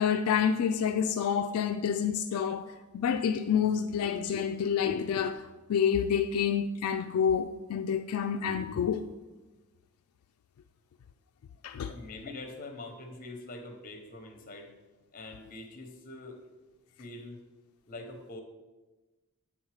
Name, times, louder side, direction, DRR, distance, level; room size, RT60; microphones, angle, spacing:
voice 1, 0.0-5.4 5.7-9.1 11.6-11.9, left 7 dB, 75° left, 0.3 m, -28 dB
voice 2, 11.9-14.7 15.1-16.4 17.0-17.4 17.9-18.4, left 2 dB, 40° left, 0.9 m, -44 dB
8.5 x 3.6 x 4.8 m
head